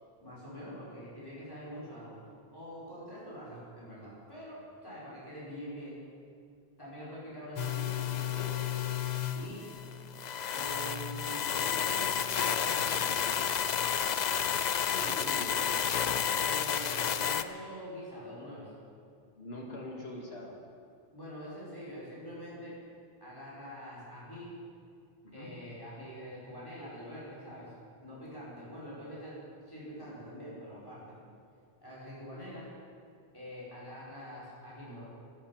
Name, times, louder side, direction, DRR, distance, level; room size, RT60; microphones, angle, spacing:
voice 1, 0.2-2.2 2.5-6.0 6.8-8.7 9.3-9.7 10.5-13.3 16.4-18.7 21.1-22.8 23.2-24.6 25.3-27.7 28.0-31.1 31.8-32.7 33.3-35.1, equal, 20° left, -8 dB, 5.2 m, -45 dB
sound 1, 7.6-17.4, left 8 dB, 50° left, 0.6 m, -31 dB
voice 2, 14.9-16.2 19.4-20.5 25.2-25.5, left 1 dB, 70° left, -2 dB, 2.5 m, -43 dB
12.5 x 12.5 x 7.3 m, 2.3 s
omnidirectional pair, 1.1 m